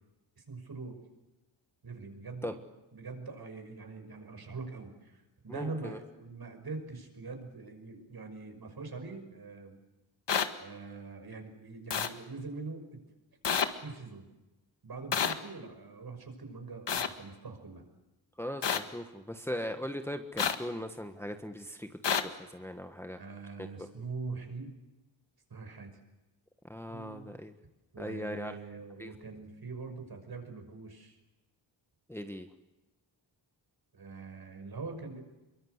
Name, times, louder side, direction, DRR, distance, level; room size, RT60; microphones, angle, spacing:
voice 1, 0.4-1.0 1.8-2.6 2.9-9.8 10.6-12.9 13.8-14.3 14.8-17.8 23.2-24.7 25.5-26.0 26.9-27.3 27.9-31.2 33.9-35.2, right 4 dB, 55° right, 6 dB, 6.0 m, -43 dB
voice 2, 5.5-6.0 18.4-21.9 22.2-23.2 23.8-23.9 26.7-27.5 28.0-28.5 29.0-29.1 32.1-32.5, left 1 dB, 5° left, 6 dB, 1.4 m, -39 dB
sound 1, 10.3-10.5 11.9-12.1 13.4-13.7 15.1-15.3 16.9-17.1 18.6-18.8 20.4-20.6 22.0-22.2, left 7 dB, 65° left, 1.9 m, -28 dB
27.0 x 23.5 x 8.1 m, 1.0 s
wide cardioid pair, 160°, 45 cm